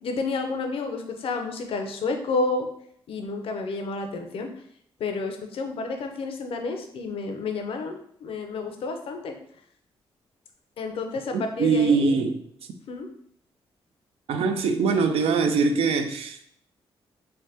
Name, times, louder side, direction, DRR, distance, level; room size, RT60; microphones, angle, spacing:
voice 1, 0.0-2.7 3.1-4.5 5.0-9.3 10.8-12.1 12.9-13.1, left 3 dB, 65° left, 5 dB, 0.5 m, -30 dB
voice 2, 11.3-12.4 14.3-16.4, right 4 dB, 70° right, 7 dB, 0.4 m, -23 dB
3.3 x 2.1 x 2.7 m, 0.66 s
cardioid pair, 75°, 10 cm